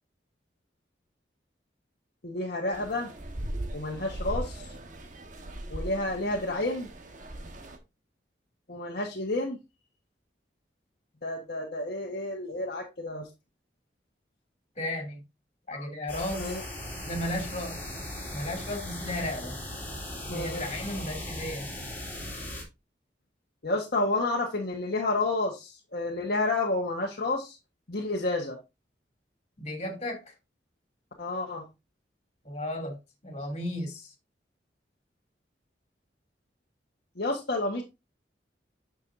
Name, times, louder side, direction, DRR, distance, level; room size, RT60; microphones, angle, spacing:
voice 1, 2.2-3.1 3.7-4.7 5.7-6.9 8.7-9.6 11.2-13.3 15.7-15.9 16.3-16.6 20.3-20.7 23.6-27.6 27.9-28.6 31.2-31.6 37.2-37.8, left 2 dB, 60° left, 1.4 m, -30 dB
sound 1, 2.7-7.8, right 1 dB, 45° right, 1.3 m, -38 dB
voice 2, 14.8-15.2 15.7-16.5 17.0-17.8 18.3-19.6 20.3-21.7 29.6-30.2 32.4-33.0 33.2-34.1, left 1 dB, 35° left, 2.8 m, -34 dB
sound 2, 16.1-22.6, left 1 dB, 10° left, 3.6 m, -38 dB
9.1 x 6.3 x 2.6 m
head